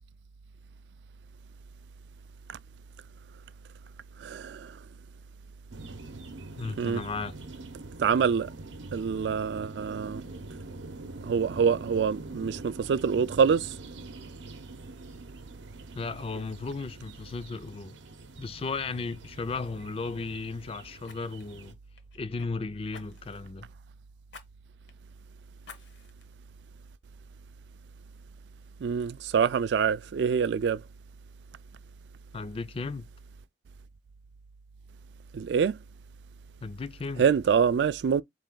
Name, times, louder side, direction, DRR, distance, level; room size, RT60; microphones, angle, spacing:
voice 1, 4.2-4.8 6.8-7.0 8.0-8.5 8.9-10.2 11.2-13.8 28.8-30.8 35.3-35.8 37.2-38.2, right 6 dB, 70° right, 0.3 m, -25 dB
sound 1, 5.7-21.7, right 2 dB, 90° right, 0.7 m, -44 dB
voice 2, 6.6-7.3 15.9-18.0 18.4-21.8 22.1-23.7 32.3-33.1 36.6-37.2, left 4 dB, 30° left, 0.4 m, -35 dB
Fire, 18.3-18.6 18.9-19.1 21.0-22.5 22.9-23.5 24.3-24.5 24.9-25.0 25.6-26.2 26.8-26.9, left 5 dB, 75° left, 1.0 m, -51 dB
4.1 x 3.3 x 3.7 m
head